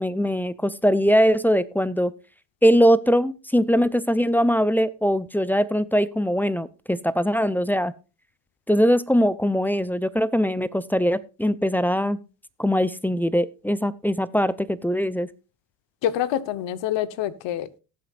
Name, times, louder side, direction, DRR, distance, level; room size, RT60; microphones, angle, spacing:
voice 1, 0.0-2.1 2.6-7.9 8.7-12.2 12.6-15.3, equal, 5° left, 0.5 m, -21 dB
voice 2, 16.0-17.8, left 11 dB, 60° left, 1.0 m, -26 dB
18.5 x 7.6 x 2.4 m
supercardioid pair, 80°, 49 cm